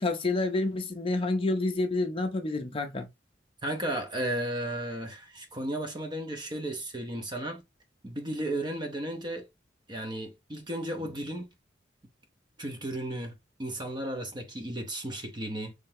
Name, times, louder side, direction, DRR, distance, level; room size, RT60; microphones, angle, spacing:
voice 1, 0.0-3.1, left 2 dB, 30° left, 0.5 m, -28 dB
voice 2, 3.6-7.6 8.0-9.5 9.9-11.5 12.6-15.7, right 1 dB, 25° right, 0.7 m, -34 dB
3.8 x 3.2 x 2.6 m
head